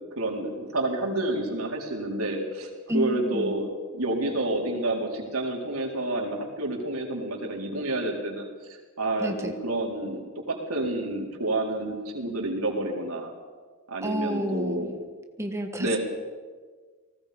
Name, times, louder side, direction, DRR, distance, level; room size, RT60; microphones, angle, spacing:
voice 1, 0.0-13.3 13.9-14.9 15.8-16.0, right 1 dB, 85° right, 0 dB, 4.3 m, -29 dB
voice 2, 2.9-3.5 9.2-9.5 14.0-14.9 15.4-16.0, equal, 15° right, 4 dB, 1.4 m, -30 dB
30.0 x 19.5 x 5.3 m, 1.5 s
head